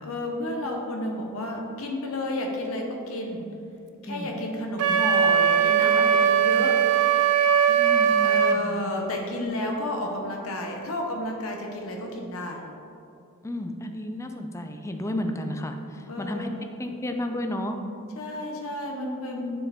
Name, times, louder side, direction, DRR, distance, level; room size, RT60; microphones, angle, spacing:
voice 1, 0.0-3.5 4.0-6.8 8.2-12.6 16.1-16.8 18.2-19.6, left 1 dB, 65° left, 1 dB, 0.8 m, -31 dB
Wind instrument woodwind instrument, 4.8-8.6, right 8 dB, 85° right, 0.4 m, -20 dB
voice 2, 7.7-8.8 13.4-16.5 16.8-17.8, left 1 dB, 15° left, 5 dB, 0.4 m, -32 dB
10.0 x 4.8 x 3.5 m, 2.6 s
head